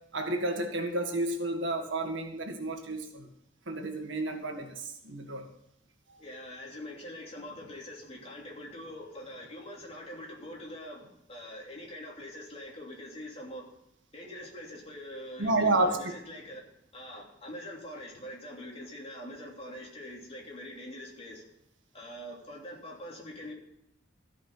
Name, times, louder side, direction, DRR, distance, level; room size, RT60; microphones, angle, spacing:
voice 1, 0.1-3.3 3.7-5.5 15.4-15.9, right 2 dB, 75° right, 4 dB, 1.8 m, -30 dB
voice 2, 6.2-13.7 14.1-16.6 16.9-21.4 21.9-23.5, left 1 dB, 30° left, -2 dB, 3.0 m, -44 dB
14.5 x 5.7 x 7.1 m, 0.81 s
head